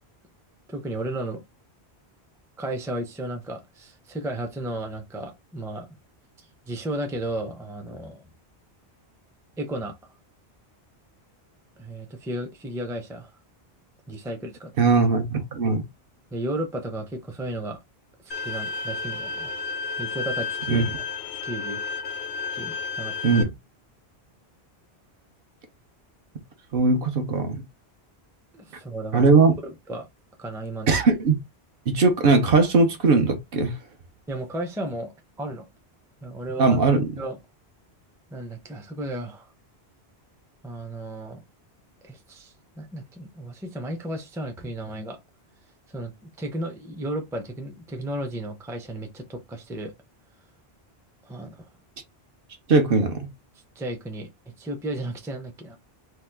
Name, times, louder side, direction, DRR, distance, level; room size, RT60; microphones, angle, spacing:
voice 1, 0.7-1.4 2.6-5.9 6.4-8.2 9.6-10.0 11.8-13.3 14.1-14.9 16.3-17.8 18.4-19.6 20.0-20.9 21.3-21.8 22.5-23.4 28.5-29.2 29.6-30.1 30.4-30.9 34.3-35.1 35.4-35.7 36.2-36.8 37.2-37.4 38.3-39.5 40.6-41.4 42.0-45.2 45.9-49.9 51.3-51.7 53.8-54.3 54.6-55.8, right 1 dB, 5° right, 0.4 m, -34 dB
voice 2, 14.8-15.8 20.7-20.8 23.2-23.5 26.7-27.6 29.1-29.5 30.9-31.4 31.9-33.7 36.6-37.1 52.7-53.3, right 4 dB, 65° right, 0.9 m, -19 dB
Bowed string instrument, 18.3-23.4, left 4 dB, 85° left, 0.9 m, -32 dB
2.9 x 2.2 x 3.3 m
omnidirectional pair, 1.1 m